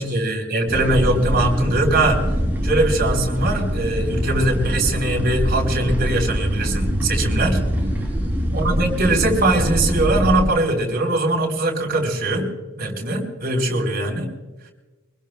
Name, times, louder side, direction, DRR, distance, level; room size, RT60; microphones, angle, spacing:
voice 1, 0.0-2.2 2.6-7.6 8.5-12.5 12.8-14.3, right 2 dB, 50° right, 1 dB, 4.3 m, -21 dB
sound 1, 0.7-10.4, equal, 10° right, 4.3 m, -23 dB
25.0 x 20.5 x 2.3 m, 1.1 s
head